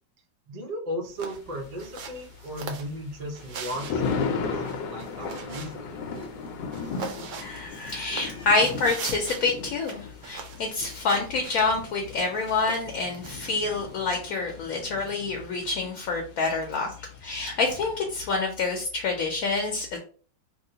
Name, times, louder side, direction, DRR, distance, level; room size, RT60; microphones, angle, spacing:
voice 1, 0.5-6.3, equal, 90° right, 1 dB, 0.3 m, -36 dB
sound 1, 1.0-13.8, right 5 dB, 70° right, 0.7 m, -42 dB
Thunder, 1.3-18.4, left 5 dB, 90° left, 1.3 m, -37 dB
voice 2, 7.4-20.0, left 3 dB, 65° left, 2 dB, 1.0 m, -27 dB
3.0 x 2.8 x 2.7 m, 0.40 s
omnidirectional pair, 1.9 m